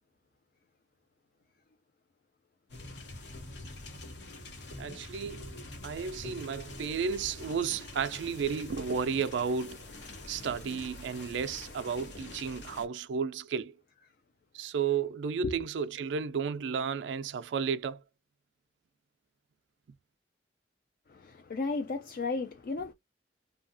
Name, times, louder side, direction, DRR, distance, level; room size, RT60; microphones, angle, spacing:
sound 1, 2.7-12.9, left 2 dB, 70° left, 0.8 m, -45 dB
voice 1, 4.8-9.9 10.3-13.7 14.5-18.0, right 6 dB, 85° right, 0.4 m, -33 dB
voice 2, 21.1-22.9, left 3 dB, 55° left, 0.4 m, -34 dB
2.7 x 2.3 x 2.5 m
head